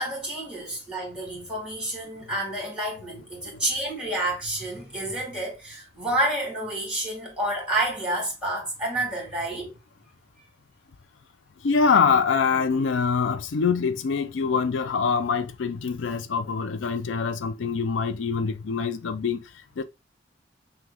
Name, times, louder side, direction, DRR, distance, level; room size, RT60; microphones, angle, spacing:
voice 1, 0.0-9.7, right 1 dB, 5° right, 2.1 m, -29 dB
voice 2, 11.6-19.4 19.8-19.9, left 5 dB, 90° left, 0.4 m, -24 dB
5.9 x 2.3 x 3.4 m
head